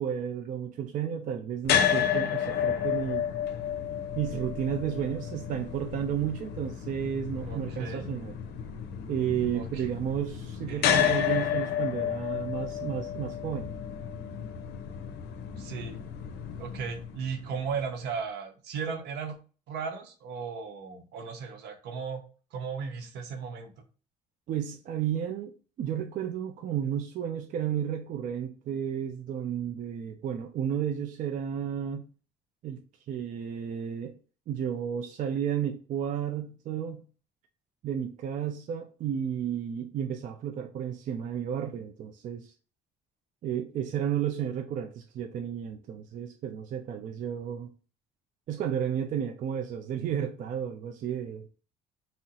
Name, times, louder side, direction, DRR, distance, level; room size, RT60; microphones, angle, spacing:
voice 1, 0.0-3.3 4.2-8.3 9.1-13.7 24.5-25.5 25.8-32.1 32.6-34.2 34.5-37.0 37.8-42.5 43.4-47.7 48.5-51.5, right 9 dB, 50° right, 0.4 m, -32 dB
sound 1, 1.6-17.8, left 9 dB, 75° left, 0.5 m, -31 dB
voice 2, 7.5-8.1 9.5-9.9 10.7-11.0 15.6-16.0 16.6-19.4 19.7-22.2 22.5-23.7, right 6 dB, 80° right, 0.8 m, -36 dB
2.8 x 2.0 x 3.7 m
cardioid pair, 110°, 17 cm